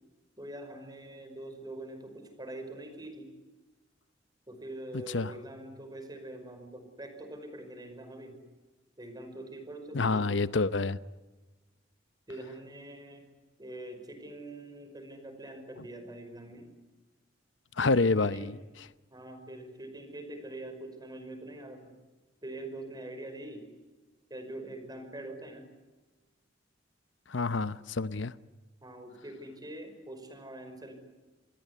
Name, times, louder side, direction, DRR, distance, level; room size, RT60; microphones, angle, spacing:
voice 1, 0.4-3.3 4.5-8.4 9.0-10.3 12.3-13.3 13.6-16.7 17.8-18.6 19.1-21.9 22.4-23.7 24.3-25.7 28.8-30.9, right 1 dB, 20° right, 5.5 m, -44 dB
voice 2, 9.9-11.0 17.8-18.9 27.3-28.3, left 3 dB, 85° left, 0.8 m, -28 dB
27.0 x 20.5 x 9.8 m
head